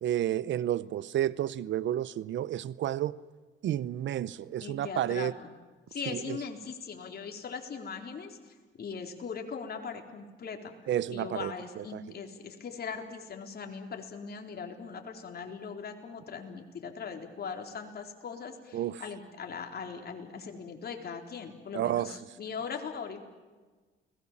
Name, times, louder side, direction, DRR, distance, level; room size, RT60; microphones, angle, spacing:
voice 1, 0.0-3.2 3.6-5.3 6.1-6.4 10.9-12.0 18.7-19.0 21.7-22.2, right 12 dB, 70° right, 0.8 m, -31 dB
voice 2, 4.6-5.5 5.9-8.4 8.8-10.7 11.1-23.2, left 6 dB, 50° left, 3.9 m, -40 dB
29.5 x 20.5 x 7.4 m
cardioid pair, 90°, 20 cm